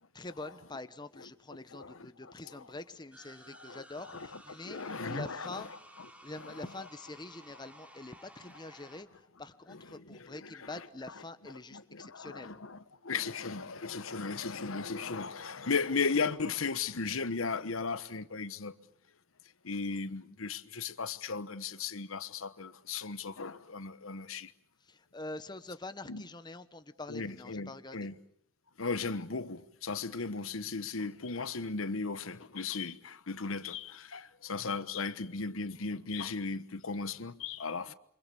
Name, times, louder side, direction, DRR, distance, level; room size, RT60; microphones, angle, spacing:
voice 1, 0.1-12.6 24.8-28.1 37.8-37.9, left 2 dB, 20° left, 1.1 m, -45 dB
voice 2, 1.7-2.1 2.5-2.6 3.7-4.3 4.6-5.7 6.4-6.5 9.9-10.4 11.7-18.7 19.6-24.5 26.1-26.2 27.1-28.1 28.8-37.9, left 4 dB, 90° left, 1.2 m, -36 dB
sound 1, 3.1-9.0, right 1 dB, 5° right, 3.1 m, -55 dB
28.0 x 26.0 x 7.1 m
head